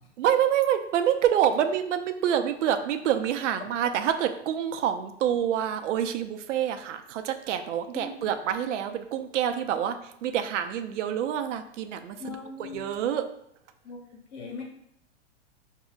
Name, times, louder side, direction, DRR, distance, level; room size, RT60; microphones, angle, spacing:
voice 1, 0.2-13.2, right 9 dB, 85° right, 8 dB, 0.5 m, -27 dB
voice 2, 7.9-8.3 12.2-13.1 13.8-14.0 14.3-14.6, left 4 dB, 70° left, -1 dB, 1.4 m, -40 dB
4.9 x 2.7 x 2.3 m, 0.74 s
hypercardioid pair, 135°, 35 cm